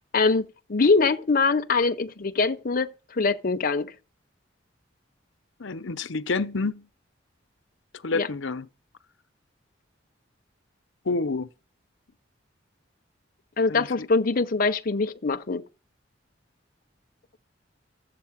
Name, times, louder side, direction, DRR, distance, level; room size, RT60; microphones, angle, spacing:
voice 1, 0.1-3.9 8.1-8.3 13.6-15.6, left 4 dB, 50° left, 0.7 m, -23 dB
voice 2, 5.6-6.9 8.0-8.7 11.0-11.5 13.7-14.1, left 3 dB, 80° left, 0.8 m, -28 dB
14.0 x 8.2 x 7.3 m
head